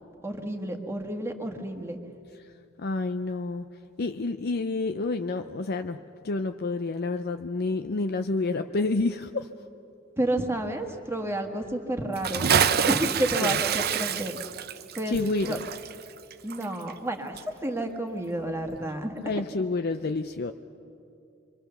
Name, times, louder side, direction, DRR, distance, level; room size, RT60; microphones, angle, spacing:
voice 1, 0.2-2.0 10.2-12.5 12.9-14.6 14.9-15.6 16.4-19.2, right 1 dB, 15° right, 4 dB, 1.6 m, -30 dB
voice 2, 2.8-3.7 4.0-6.0 6.2-9.5 13.4-13.6 15.1-15.6 19.2-20.5, left 3 dB, 50° left, 8 dB, 0.5 m, -29 dB
Bathtub (filling or washing) / Splash splatter, 12.1-17.1 17.4-17.5, right 8 dB, 50° right, 0.6 m, -26 dB
26.0 x 23.0 x 6.9 m, 2.8 s
head